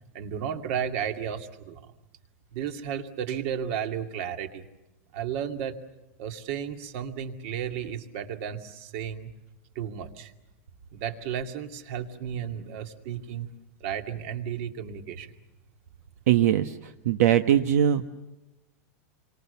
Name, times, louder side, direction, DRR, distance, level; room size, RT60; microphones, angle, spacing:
voice 1, 0.1-1.9 2.5-4.7 5.1-5.8 6.2-9.3 9.8-10.3 10.9-13.5 13.8-15.3, right 8 dB, 50° right, 6 dB, 2.4 m, -33 dB
voice 2, 16.3-16.7 17.0-18.0, right 10 dB, 75° right, 8 dB, 1.2 m, -21 dB
29.5 x 25.0 x 7.0 m, 0.96 s
supercardioid pair, 160°, 8 cm